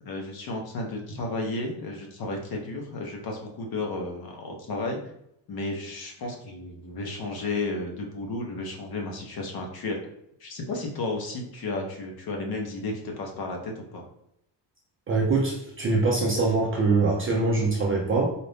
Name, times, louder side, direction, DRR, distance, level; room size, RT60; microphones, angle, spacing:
voice 1, 0.0-5.0 5.5-10.0 10.4-14.0, left 2 dB, 50° left, 1 dB, 0.8 m, -33 dB
voice 2, 15.1-18.3, right 3 dB, 30° right, -2 dB, 0.4 m, -23 dB
4.1 x 2.5 x 3.4 m, 0.76 s
cardioid pair, 165°, 49 cm